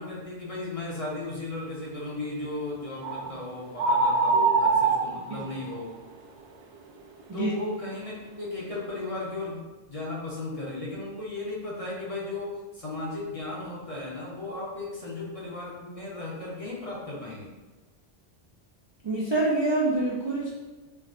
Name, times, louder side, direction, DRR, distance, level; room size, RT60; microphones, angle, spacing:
voice 1, 0.0-5.9 7.3-17.5, left 2 dB, 40° left, -5 dB, 0.7 m, -35 dB
sound 1, 3.0-3.3 3.8-5.8, right 4 dB, 75° right, 0.8 m, -23 dB
voice 2, 19.0-20.5, right 2 dB, 35° right, -7 dB, 0.4 m, -26 dB
4.6 x 2.1 x 2.5 m, 1.2 s
omnidirectional pair, 1.1 m